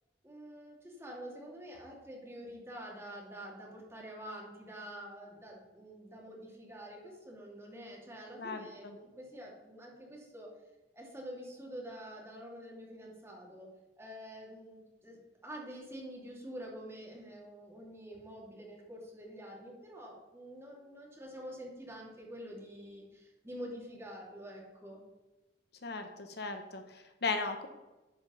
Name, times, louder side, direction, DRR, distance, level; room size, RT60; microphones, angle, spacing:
voice 1, 0.2-10.5 10.9-13.7 14.0-25.0, equal, 15° right, -3 dB, 2.6 m, -47 dB
voice 2, 8.4-8.9 25.8-27.7, left 4 dB, 65° left, 6 dB, 1.0 m, -37 dB
10.5 x 5.2 x 5.6 m, 1.1 s
head